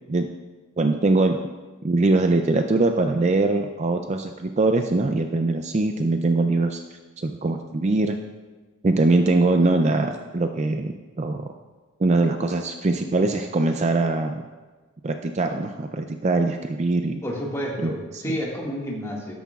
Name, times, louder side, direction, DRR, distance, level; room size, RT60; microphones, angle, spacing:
voice 1, 0.8-1.4 1.8-6.8 7.2-8.2 8.8-11.4 12.0-14.4 15.0-17.2 17.8-17.9, right 2 dB, 30° right, 6 dB, 0.4 m, -22 dB
voice 2, 17.2-19.3, equal, 15° left, -3 dB, 1.9 m, -30 dB
13.0 x 12.5 x 2.4 m, 1.3 s
head